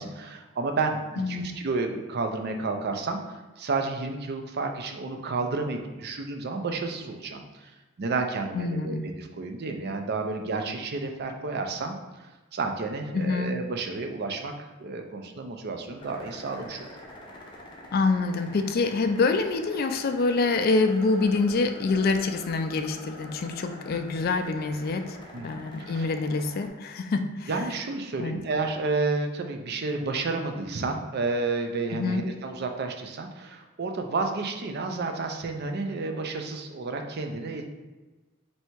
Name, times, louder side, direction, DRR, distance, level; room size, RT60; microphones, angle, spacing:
voice 1, 0.0-1.0 1.3-7.7 8.0-12.3 12.5-16.9 25.3-26.1 27.5-37.7, right 3 dB, 50° right, 4 dB, 0.5 m, -31 dB
voice 2, 1.2-1.5 8.5-9.0 13.1-13.5 17.9-25.2 25.4-27.5 28.2-28.4 31.9-32.2, left 3 dB, 45° left, 8 dB, 0.3 m, -26 dB
sound 1, 16.0-26.7, left 1 dB, 25° left, 0.7 m, -45 dB
3.3 x 2.8 x 4.5 m, 1.2 s
head